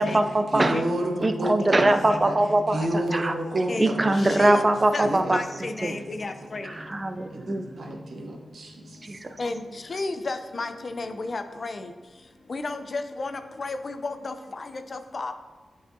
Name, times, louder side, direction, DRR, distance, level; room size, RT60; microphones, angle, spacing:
voice 1, 0.0-0.8 1.2-3.3 3.8-5.4 5.8-6.0 6.6-7.7 9.0-9.4, right 2 dB, 35° right, 8 dB, 0.5 m, -22 dB
voice 2, 0.5-2.0 2.2-2.3 2.7-4.1 4.4-4.6 5.0-5.3 5.8-5.9 6.5-6.9 7.3-9.2, right 1 dB, 75° right, 1 dB, 1.0 m, -31 dB
voice 3, 1.2-1.5 3.7-3.9 4.4-4.6 4.9-5.1 5.3-6.7 9.4-9.6 9.9-11.7 12.5-13.3 13.6-14.3 14.9-15.3, left 3 dB, 55° left, 8 dB, 0.5 m, -32 dB
8.7 x 4.8 x 2.7 m, 1.4 s
cardioid pair, 45°, 0 cm